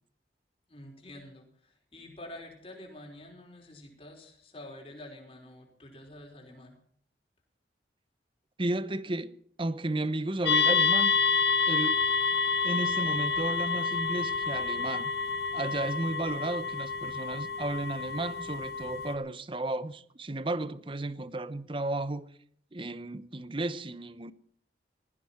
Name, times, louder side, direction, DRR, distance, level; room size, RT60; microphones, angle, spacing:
voice 1, 0.7-6.8, left 1 dB, 35° left, 5.0 m, -48 dB
voice 2, 8.6-11.1 11.7-12.1 12.6-15.1 15.5-22.3 22.7-24.3, right 2 dB, 30° right, 0.8 m, -33 dB
sound 1, 10.5-19.1, left 4 dB, 65° left, 2.0 m, -28 dB
19.0 x 15.0 x 4.4 m
head